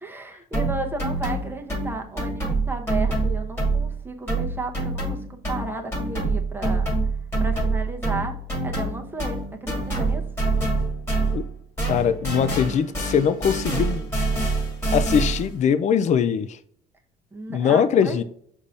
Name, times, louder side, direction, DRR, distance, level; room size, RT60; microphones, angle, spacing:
voice 1, 0.0-6.9 7.4-8.4 8.6-10.2 17.3-18.2, right 3 dB, 10° right, 0.8 m, -33 dB
sound 1, 0.5-4.0 4.3-11.5 11.8-15.6, right 2 dB, 15° left, 1.7 m, -26 dB
voice 2, 11.9-14.1 14.9-16.6 17.5-18.2, left 7 dB, 45° left, 0.4 m, -21 dB
5.3 x 2.7 x 3.1 m
cardioid pair, 110°, 17 cm